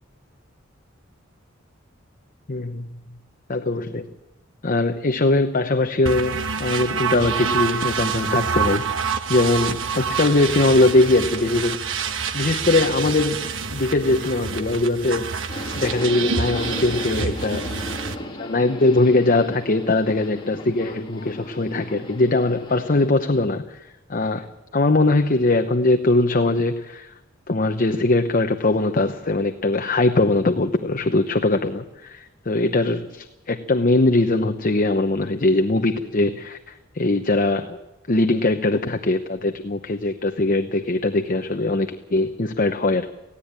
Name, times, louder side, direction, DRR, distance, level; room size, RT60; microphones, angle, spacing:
voice 1, 2.5-2.8 3.5-4.1 4.6-11.9 12.3-15.3 15.8-17.8 18.4-27.1 27.5-37.8 38.1-43.1, left 2 dB, 45° left, 7 dB, 0.9 m, -21 dB
sound 1, 6.1-18.2, right 6 dB, 75° right, 1.2 m, -27 dB
Subway metro underground, 15.5-23.1, left 1 dB, 25° left, 2.6 m, -36 dB
18.5 x 16.0 x 8.8 m, 0.97 s
head